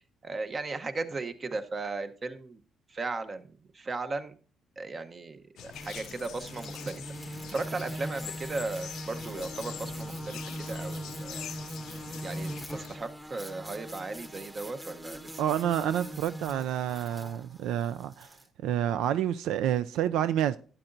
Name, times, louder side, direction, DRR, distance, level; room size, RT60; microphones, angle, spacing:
voice 1, 0.2-2.6 2.9-4.3 4.8-11.4 12.2-15.4, right 3 dB, 35° right, 0.9 m, -36 dB
sound 1, 5.6-13.0, left 10 dB, 80° left, 0.4 m, -44 dB
sound 2, 5.7-18.5, right 1 dB, 15° right, 1.1 m, -41 dB
voice 2, 15.4-18.3 18.6-20.6, right 10 dB, 90° right, 0.3 m, -28 dB
12.0 x 8.9 x 2.6 m
cardioid pair, 90°, 0 cm